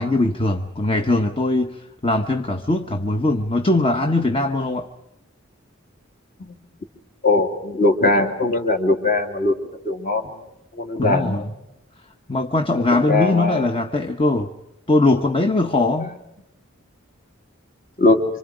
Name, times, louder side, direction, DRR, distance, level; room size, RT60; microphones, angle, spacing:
voice 1, 0.0-4.9 11.0-11.5 12.3-14.5 14.9-16.2, left 2 dB, 25° left, 0.9 m, -21 dB
voice 2, 7.2-9.5 9.8-10.2 10.8-11.5 13.1-13.6 18.0-18.2, left 2 dB, 45° left, 2.9 m, -20 dB
27.5 x 25.5 x 5.0 m
head